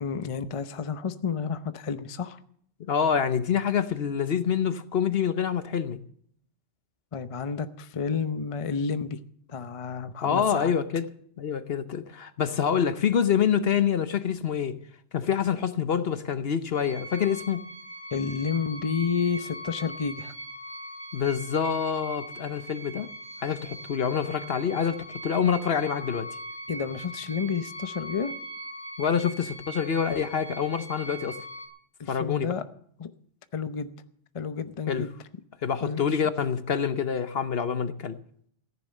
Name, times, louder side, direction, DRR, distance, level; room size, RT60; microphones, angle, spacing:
voice 1, 0.0-2.4 7.1-9.2 9.5-10.7 18.1-20.3 26.7-28.3 32.0-32.6 33.0-33.1 33.5-33.9 34.3-35.1 35.8-36.2, left 6 dB, 30° left, 0.7 m, -30 dB
voice 2, 2.8-6.0 10.2-11.1 11.4-14.8 15.1-17.6 21.1-23.1 23.4-26.3 29.0-31.4 32.1-32.5 34.9-35.1 35.6-38.2, left 7 dB, 55° left, 1.0 m, -26 dB
sound 1, 16.8-31.7, right 1 dB, 60° right, 4.3 m, -41 dB
15.0 x 10.5 x 6.5 m
omnidirectional pair, 1.3 m